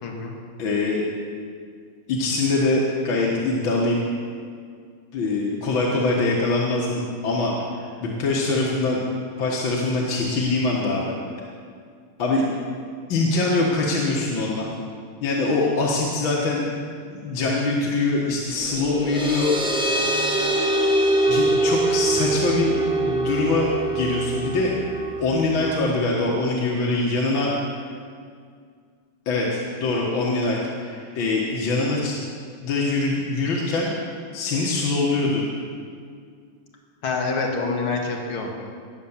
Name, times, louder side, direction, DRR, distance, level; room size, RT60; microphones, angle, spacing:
voice 1, 0.0-0.3 37.0-38.5, left 3 dB, 90° left, 0 dB, 2.6 m, -26 dB
voice 2, 0.6-1.1 2.1-4.0 5.1-9.0 9.4-11.1 12.2-12.4 13.1-14.7 15.2-16.7 17.1-20.2 21.3-24.8 25.2-27.5 29.3-32.1 32.6-33.9 34.3-35.4, left 3 dB, 70° left, -4 dB, 2.3 m, -23 dB
sound 1, 18.6-25.7, right 2 dB, ahead, 1.6 m, -24 dB
19.0 x 7.4 x 7.3 m, 2.1 s
omnidirectional pair, 2.3 m